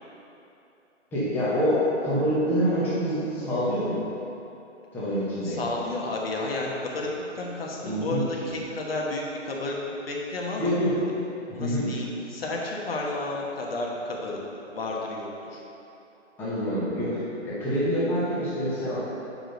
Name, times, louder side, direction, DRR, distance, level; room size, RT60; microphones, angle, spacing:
voice 1, 1.1-4.0 4.9-5.6 7.8-8.2 10.6-10.9 11.6-11.9 16.4-19.1, equal, 5° left, -10 dB, 0.9 m, -26 dB
voice 2, 5.4-7.1 7.3-9.8 10.1-10.8 11.5-14.4 14.7-15.6, left 2 dB, 50° left, -2 dB, 1.3 m, -32 dB
8.7 x 5.2 x 3.9 m, 2.9 s
hypercardioid pair, 160°, 37 cm